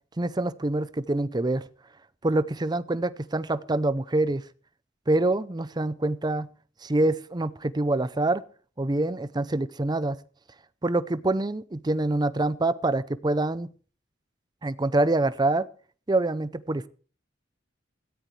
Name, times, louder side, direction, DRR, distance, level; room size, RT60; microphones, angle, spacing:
voice 1, 0.2-1.6 2.2-4.4 5.1-6.5 6.8-8.4 8.8-10.2 10.8-13.7 14.6-15.7 16.1-16.9, right 2 dB, 20° right, 15 dB, 0.6 m, -25 dB
17.5 x 14.0 x 3.3 m, 0.41 s
head